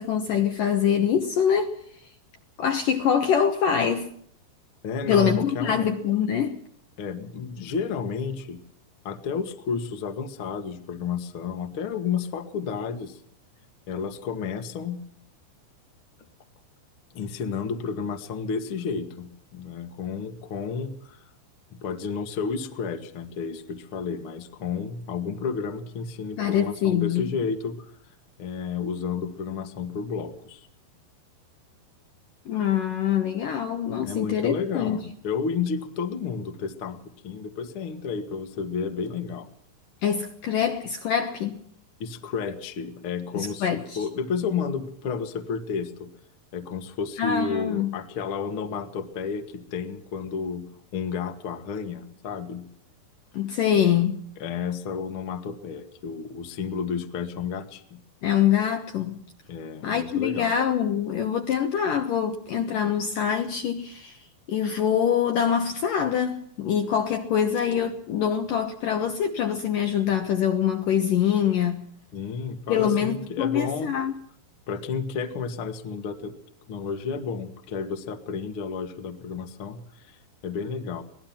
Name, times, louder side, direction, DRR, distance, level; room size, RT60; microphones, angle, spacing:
voice 1, 0.0-1.7 2.6-4.1 5.1-6.6 26.4-27.2 32.5-35.0 40.0-41.6 43.4-44.0 47.2-47.9 53.3-54.2 58.2-59.2 59.8-64.2 64.5-71.8 72.7-74.1, left 8 dB, 65° left, 2.3 m, -24 dB
voice 2, 4.8-5.9 7.0-8.6 9.0-13.2 13.9-15.1 17.1-21.2 21.7-27.8 28.4-30.7 34.0-39.5 42.0-46.1 46.5-52.7 53.8-53.9 54.4-58.0 59.5-60.5 72.1-73.9 74.7-76.3 76.7-81.0, left 5 dB, 50° left, 1.7 m, -31 dB
24.5 x 19.5 x 5.8 m
omnidirectional pair, 5.3 m